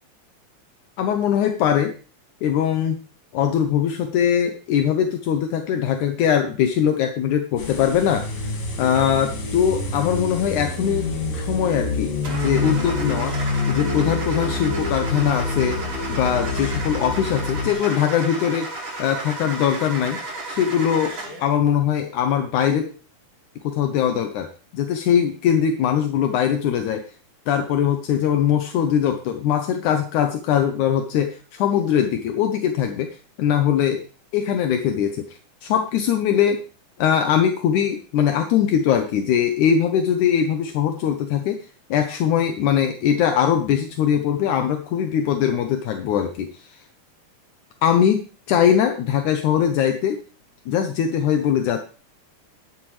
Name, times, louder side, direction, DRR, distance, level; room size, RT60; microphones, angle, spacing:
voice 1, 1.0-1.9 2.4-3.0 3.3-8.2 8.8-13.3 13.7-15.8 16.1-20.2 20.5-21.1 21.4-22.9 23.6-24.5 24.7-27.0 27.5-33.1 33.4-34.0 34.3-35.3 35.6-36.6 37.0-41.6 41.9-46.7 47.8-50.2 50.7-51.8, left 9 dB, 80° left, 6 dB, 2.3 m, -21 dB
sound 1, 7.6-17.7, left 3 dB, 60° left, 3.2 m, -27 dB
Car / Engine starting, 12.2-21.5, right 2 dB, 35° right, 5.4 m, -33 dB
13.5 x 11.0 x 3.3 m, 0.38 s
omnidirectional pair, 3.5 m